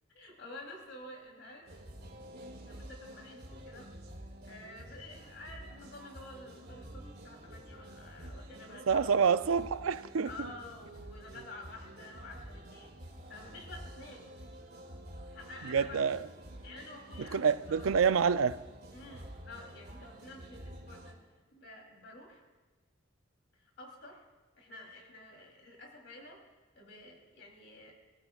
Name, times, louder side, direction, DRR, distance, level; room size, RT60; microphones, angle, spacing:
voice 1, 0.1-1.7 2.6-3.9 4.4-9.0 10.2-13.0 13.3-14.3 15.3-16.1 16.6-18.2 18.9-21.2 21.5-22.4 23.5-24.2 24.6-27.9, left 2 dB, 60° left, 3.3 m, -50 dB
sound 1, 1.6-21.1, right 1 dB, 50° right, 2.3 m, -49 dB
voice 2, 8.9-10.3 15.6-16.3 17.3-18.6, right 6 dB, 85° right, 0.5 m, -27 dB
26.5 x 15.0 x 2.4 m
head